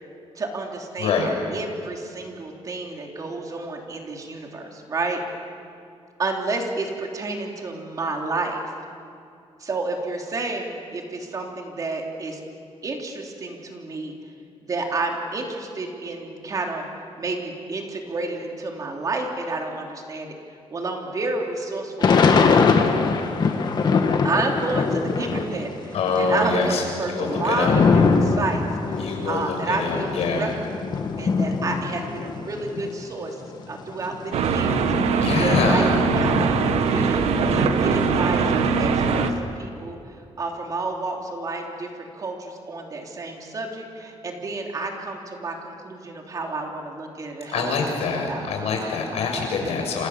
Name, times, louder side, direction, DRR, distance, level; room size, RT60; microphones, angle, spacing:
voice 1, 0.4-1.2 1.5-5.2 6.2-8.6 9.6-12.4 12.8-14.1 14.6-16.8 17.2-20.4 20.7-22.9 24.2-29.0 29.3-30.9 31.2-33.4 33.7-35.8 36.2-40.0 40.4-47.8 48.1-48.4, right 3 dB, 35° right, 1 dB, 3.2 m, -30 dB
voice 2, 1.0-1.3 25.9-27.7 29.0-30.5 35.2-35.9 47.5-50.1, left 4 dB, 75° left, 2 dB, 6.8 m, -25 dB
Thunder / Rain, 22.0-25.6 25.9-33.0 33.6-33.7 33.9-37.1 37.4-39.2, left 5 dB, 40° left, 1.9 m, -23 dB
sound 1, 34.3-39.3, right 5 dB, 75° right, 1.6 m, -21 dB
28.0 x 28.0 x 7.3 m, 2.4 s
wide cardioid pair, 175°, 11 cm